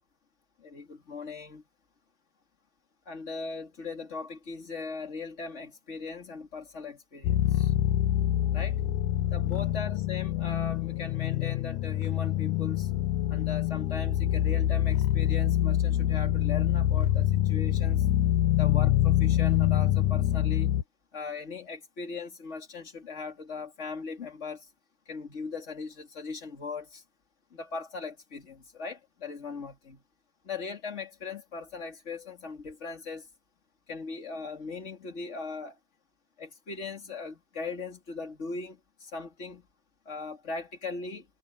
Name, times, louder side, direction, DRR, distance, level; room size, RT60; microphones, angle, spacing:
voice 1, 0.6-1.6 3.1-7.7 8.5-8.8 9.3-12.9 13.3-18.0 18.6-20.7 21.1-24.6 25.1-27.0 27.5-30.0 30.4-33.3 33.9-35.7 36.4-39.6 40.1-41.3, left 4 dB, 20° left, 2.2 m, -39 dB
sound 1, 7.2-20.8, left 13 dB, 85° left, 1.7 m, -25 dB
omnidirectional pair, 4.6 m